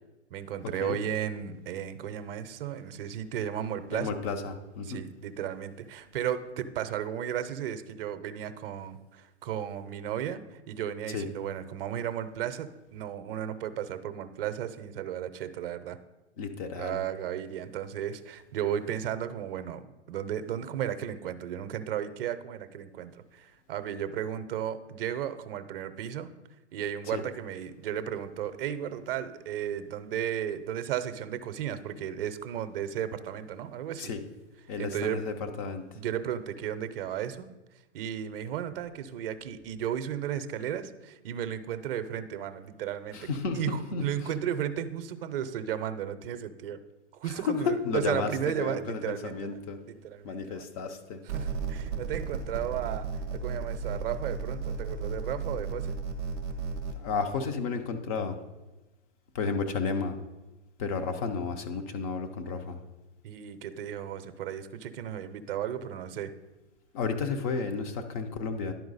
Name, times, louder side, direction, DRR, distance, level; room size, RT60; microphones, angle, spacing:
voice 1, 0.3-4.1 4.8-16.0 16.8-19.8 20.1-26.3 26.7-34.1 34.8-35.2 35.9-37.5 37.9-43.3 43.5-46.8 47.2-49.6 49.9-50.6 51.3-56.0 63.2-66.3, right 10 dB, 50° right, 11 dB, 0.6 m, -34 dB
voice 2, 3.9-5.0 11.1-11.3 16.4-17.0 27.1-27.2 34.0-34.2 34.7-35.8 43.1-44.1 47.2-49.8 50.2-51.2 57.0-58.4 59.3-60.2 60.8-62.8 66.9-68.7, left 5 dB, 30° left, 7 dB, 0.6 m, -32 dB
sound 1, 51.3-56.9, right 5 dB, 10° right, 0.3 m, -34 dB
10.5 x 4.6 x 4.0 m, 1.1 s
hypercardioid pair, 140°, 36 cm